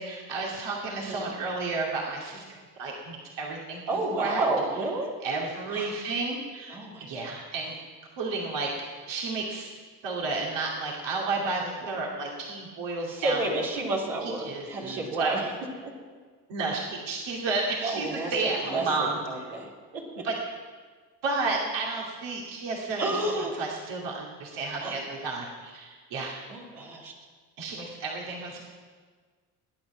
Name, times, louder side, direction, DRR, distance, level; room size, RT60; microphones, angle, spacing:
voice 1, 0.0-2.4 2.8-4.4 5.2-7.7 8.2-8.7 9.1-9.7 10.0-13.4 14.2-15.4 16.5-19.4 20.2-20.3 21.2-26.4 27.6-28.6, right 3 dB, 70° right, -2 dB, 2.6 m, -32 dB
voice 2, 1.0-1.3 3.9-5.1 5.7-5.9 6.7-7.3 13.0-15.5 15.8-15.9 17.8-20.0 23.0-23.5 24.8-25.0 26.5-27.1, right 2 dB, 85° right, -3 dB, 3.2 m, -31 dB
20.5 x 9.6 x 6.1 m, 1.5 s
hypercardioid pair, 55°, 46 cm